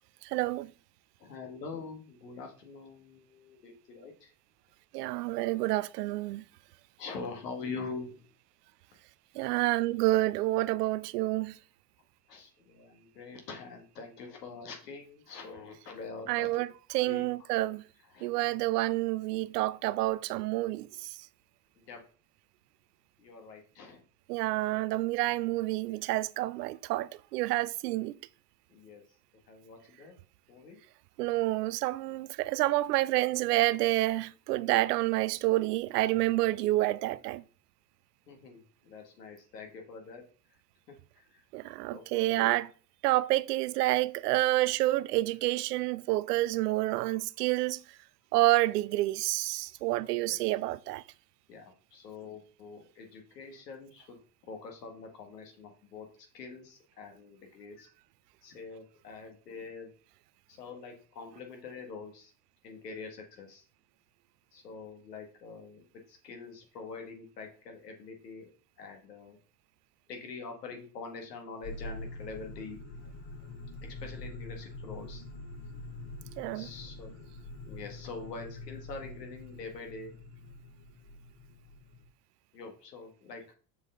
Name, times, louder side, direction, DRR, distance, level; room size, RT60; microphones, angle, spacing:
voice 1, 0.2-0.7 4.9-6.4 9.4-11.6 16.3-17.8 18.2-21.1 24.3-28.2 31.2-37.4 41.5-42.7 43.0-47.8 48.3-51.0 76.4-76.7, right 18 dB, 80° right, 0.6 m, -28 dB
voice 2, 1.2-4.3 7.0-8.3 12.3-16.6 17.0-17.3 18.1-18.3 21.9-22.0 23.2-24.0 28.7-29.0 29.5-30.1 30.5-30.8 38.3-40.2 40.9-41.4 41.9-42.5 50.1-50.4 51.5-54.2 54.5-56.1 56.3-57.9 58.4-59.9 60.5-62.3 62.6-63.6 64.5-68.5 68.8-69.4 70.1-72.8 73.8-75.2 76.5-77.1 77.7-80.1 82.5-83.4, left 4 dB, 90° left, 1.9 m, -44 dB
sound 1, 71.6-82.1, left 2 dB, 55° left, 1.8 m, -45 dB
6.9 x 4.7 x 3.8 m
hypercardioid pair, 80°, 47 cm